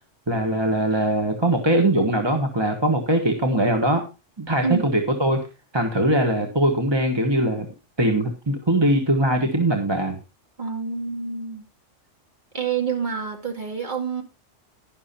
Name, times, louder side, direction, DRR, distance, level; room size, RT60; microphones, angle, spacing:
voice 1, 0.3-4.0 4.4-5.4 5.7-7.7 8.0-10.2, right 1 dB, 20° right, 3 dB, 1.3 m, -21 dB
voice 2, 10.6-11.6 12.5-14.2, right 6 dB, 40° right, 2 dB, 2.4 m, -27 dB
12.0 x 10.5 x 2.8 m, 0.28 s
omnidirectional pair, 1.3 m